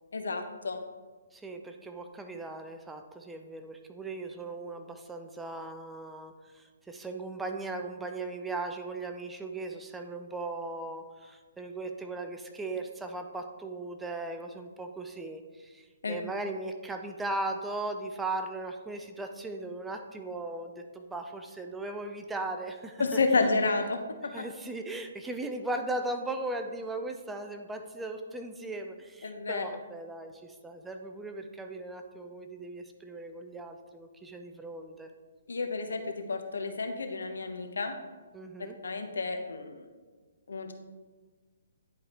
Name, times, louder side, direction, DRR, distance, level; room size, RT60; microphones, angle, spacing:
voice 1, 0.1-0.8 16.0-16.2 23.0-24.0 24.3-24.5 29.2-29.6 35.5-38.0 38.6-39.8 40.5-40.7, left 3 dB, 85° left, 6 dB, 0.9 m, -30 dB
voice 2, 1.3-23.2 24.3-35.1 38.3-38.8, right 2 dB, 5° right, 5 dB, 0.4 m, -38 dB
10.5 x 4.8 x 2.9 m, 1.4 s
hypercardioid pair, 155°, 0 cm